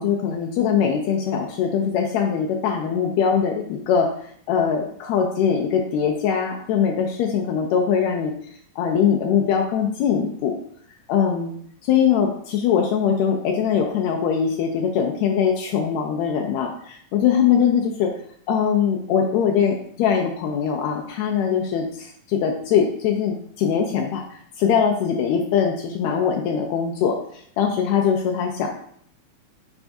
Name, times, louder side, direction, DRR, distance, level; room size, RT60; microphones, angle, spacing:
voice 1, 0.0-4.1 4.5-8.3 8.8-10.5 11.1-11.6 11.8-16.7 17.1-18.1 18.5-24.2 24.6-27.2 27.6-28.7, left 7 dB, 85° left, 1 dB, 1.6 m, -21 dB
6.0 x 3.4 x 2.6 m, 0.63 s
omnidirectional pair, 3.7 m